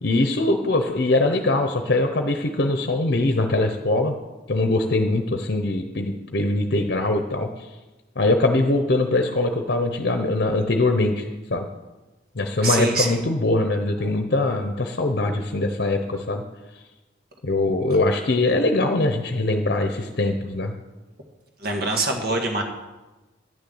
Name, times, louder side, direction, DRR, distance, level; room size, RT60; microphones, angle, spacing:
voice 1, 0.0-4.2 4.5-7.7 8.2-11.7 12.3-16.4 17.4-20.7, left 2 dB, 55° left, 5 dB, 0.8 m, -22 dB
voice 2, 12.6-13.2 21.6-22.6, right 2 dB, 55° right, 2 dB, 1.7 m, -24 dB
10.5 x 6.9 x 7.8 m, 1.1 s
head